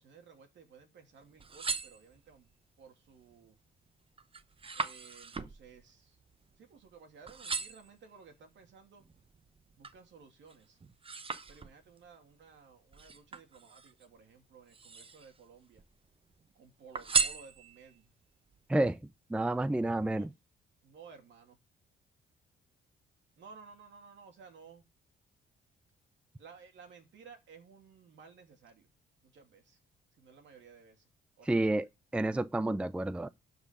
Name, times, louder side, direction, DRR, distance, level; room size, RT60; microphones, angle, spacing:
voice 1, 0.0-2.5 2.8-3.6 4.7-6.2 6.6-9.0 9.8-10.8 11.5-15.8 16.5-18.1 20.1-20.3 20.8-21.6 23.4-24.8 26.4-28.9 29.2-29.8 30.2-31.1 31.4-31.8, right 5 dB, 70° right, 2.7 m, -56 dB
sound 1, 1.2-2.5 3.1-3.5 3.9-7.0 7.3-8.0 8.6-10.1 10.5-12.0 12.9-14.1 14.6-15.4 15.7-16.5 16.9-18.0 18.5-18.6, right 4 dB, 25° right, 0.8 m, -37 dB
voice 2, 19.3-20.3 31.5-33.3, right 2 dB, 5° right, 0.4 m, -30 dB
11.5 x 5.3 x 5.1 m
cardioid pair, 90°, 20 cm